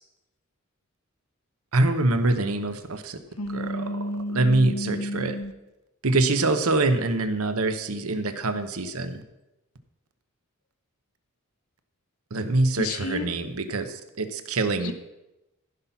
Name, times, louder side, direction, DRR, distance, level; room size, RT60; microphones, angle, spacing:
voice 1, 1.7-3.2 3.5-3.8 4.3-5.3 6.0-9.2 12.3-13.9 14.2-14.9, right 2 dB, 70° right, 9 dB, 0.9 m, -24 dB
voice 2, 3.4-5.5 12.8-13.3 14.8-14.9, left 1 dB, 70° left, 9 dB, 0.9 m, -31 dB
15.0 x 5.9 x 5.7 m, 0.96 s
head